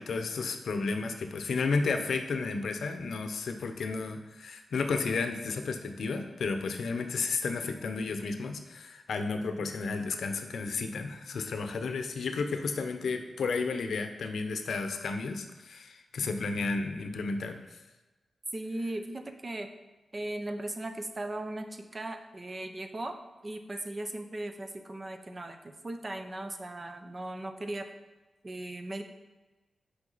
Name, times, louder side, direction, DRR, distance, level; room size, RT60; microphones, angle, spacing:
voice 1, 0.0-17.7, left 4 dB, 80° left, 7 dB, 0.6 m, -32 dB
voice 2, 18.5-19.7 20.1-23.2 23.4-27.9 28.4-29.0, right 1 dB, 30° right, 7 dB, 0.6 m, -38 dB
6.1 x 4.9 x 3.9 m, 1.2 s
wide cardioid pair, 100°, 0 cm